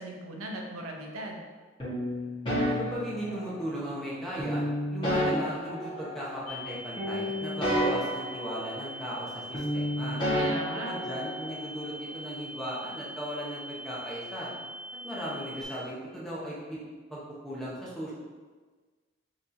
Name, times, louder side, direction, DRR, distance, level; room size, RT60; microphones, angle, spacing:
voice 1, 0.0-1.4 10.3-10.9, right 1 dB, 85° right, 1 dB, 0.7 m, -38 dB
sound 1, 1.8-3.8 4.4-6.7 7.0-9.3 9.5-11.6, equal, 25° left, 1.4 m, -31 dB
voice 2, 2.8-4.6 4.9-10.2 10.7-14.5 15.0-16.8 17.1-18.1, equal, ahead, -7 dB, 0.9 m, -37 dB
sound 2, 6.5-15.6, equal, 85° left, 0.7 m, -42 dB
5.9 x 3.0 x 2.7 m, 1.4 s
head